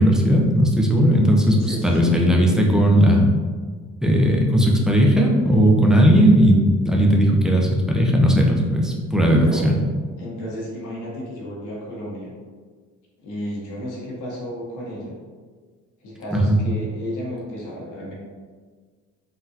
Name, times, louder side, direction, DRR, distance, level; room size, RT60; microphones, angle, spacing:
voice 1, 0.0-3.3 4.0-6.6 6.9-9.7 16.3-16.6, equal, ahead, -1 dB, 0.5 m, -17 dB
voice 2, 1.6-2.1 9.2-9.7 10.2-12.3 13.2-15.1 16.0-18.1, equal, 85° left, -5 dB, 1.0 m, -33 dB
3.8 x 2.2 x 2.7 m, 1.5 s
cardioid pair, 85°, 30 cm